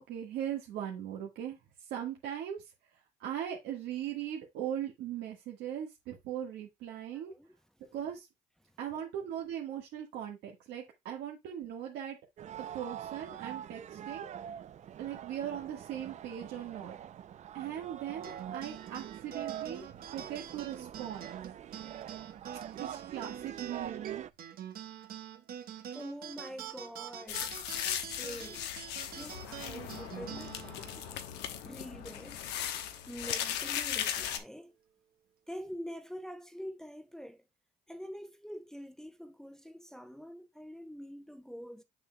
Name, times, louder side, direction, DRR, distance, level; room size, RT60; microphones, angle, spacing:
voice 1, 0.1-7.3 7.9-8.3 8.8-12.2 12.5-14.3 15.0-17.0 17.5-21.3 22.7-24.2, right 10 dB, 85° right, 1.6 m, -39 dB
voice 2, 7.1-7.6 25.9-27.5 27.8-28.7 29.2-31.1 31.6-32.5 33.1-34.7 35.5-37.4 37.9-41.8, equal, 5° left, 0.8 m, -45 dB
sound 1, 12.4-24.3, right 10 dB, 45° right, 0.5 m, -44 dB
sound 2, 18.2-33.0, right 10 dB, 60° right, 1.3 m, -46 dB
sound 3, 27.3-34.4, left 10 dB, 90° left, 1.1 m, -37 dB
6.8 x 6.7 x 2.3 m
cardioid pair, 110°, 17 cm